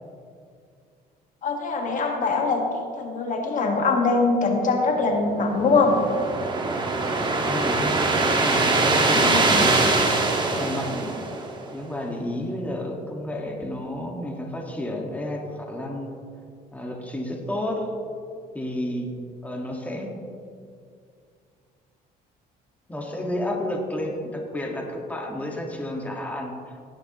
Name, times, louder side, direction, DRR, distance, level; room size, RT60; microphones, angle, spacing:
voice 1, 1.4-6.0 9.1-9.7, left 3 dB, 50° left, 2 dB, 1.6 m, -23 dB
sound 1, 5.2-11.7, right 3 dB, 25° right, 1.6 m, -23 dB
voice 2, 7.4-9.9 10.4-11.2 11.7-16.2 16.7-17.9 18.5-19.1 19.4-20.1 22.9-26.5, left 1 dB, 10° left, 0 dB, 1.6 m, -31 dB
18.0 x 9.7 x 3.0 m, 2.3 s
cardioid pair, 110°, 17 cm